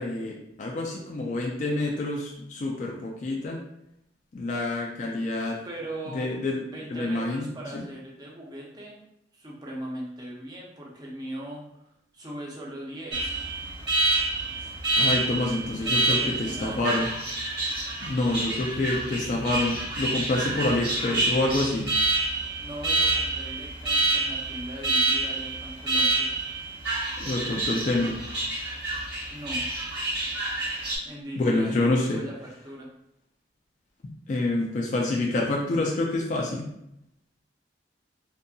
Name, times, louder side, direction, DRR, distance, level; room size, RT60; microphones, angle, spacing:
voice 1, 0.0-3.6 4.3-5.6 6.1-6.6 6.9-7.5 7.7-7.8 15.0-17.1 18.0-21.9 27.2-28.2 31.4-32.2 34.3-36.7, left 2 dB, 40° left, -2 dB, 0.3 m, -27 dB
voice 2, 5.6-6.3 6.7-9.0 9.3-13.4 15.7-16.8 22.6-26.3 29.3-29.7 31.0-32.9, right 1 dB, 20° right, -3 dB, 0.5 m, -39 dB
Alarm, 13.1-31.0, right 2 dB, 60° right, 0.9 m, -28 dB
2.6 x 2.6 x 2.3 m, 0.81 s
head